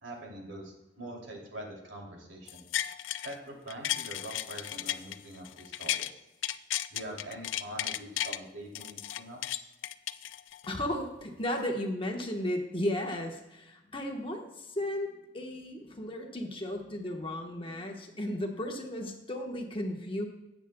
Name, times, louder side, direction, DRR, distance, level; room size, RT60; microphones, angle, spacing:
voice 1, 0.0-2.6 3.2-6.2 6.9-9.7, right 1 dB, 90° right, 0 dB, 2.8 m, -44 dB
sound 1, 2.5-3.3 3.7-6.1 6.4-8.4 8.7-10.7 11.2-11.3, left 12 dB, 90° left, 0.4 m, -34 dB
voice 2, 10.7-20.3, left 1 dB, 30° left, 2 dB, 1.2 m, -34 dB
17.5 x 8.2 x 2.3 m, 0.97 s
head